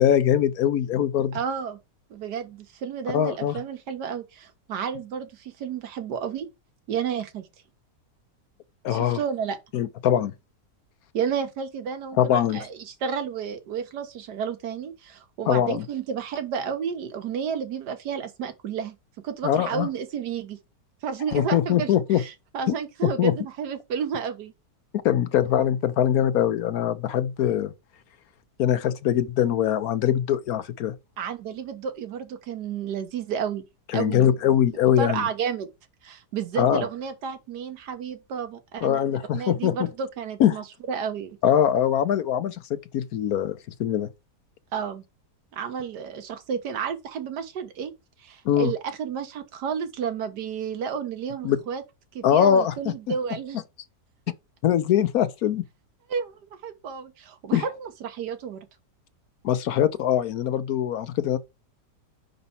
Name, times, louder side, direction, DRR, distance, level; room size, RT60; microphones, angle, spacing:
voice 1, 0.0-1.4 3.1-3.6 8.8-9.2 9.7-10.3 12.2-12.6 15.5-15.8 19.4-19.9 21.3-22.2 22.7-22.8 23.0-23.3 25.0-27.7 28.6-30.9 33.9-35.3 36.6-36.8 38.8-39.9 40.4-40.6 41.4-44.1 48.4-48.7 51.4-51.6 52.2-52.9 54.6-55.6 57.5-57.6 59.4-61.4, left 10 dB, 70° left, 1.1 m, -22 dB
voice 2, 1.3-1.8 2.1-6.5 6.9-7.5 8.9-9.6 11.1-19.0 19.2-20.6 21.0-24.5 31.2-33.6 33.9-34.3 35.0-35.7 36.0-39.0 39.3-41.4 44.7-45.0 45.5-47.9 48.2-51.8 52.1-53.6 56.1-56.4 56.6-58.7, right 7 dB, 80° right, 1.5 m, -31 dB
5.4 x 3.9 x 5.5 m
omnidirectional pair, 1.7 m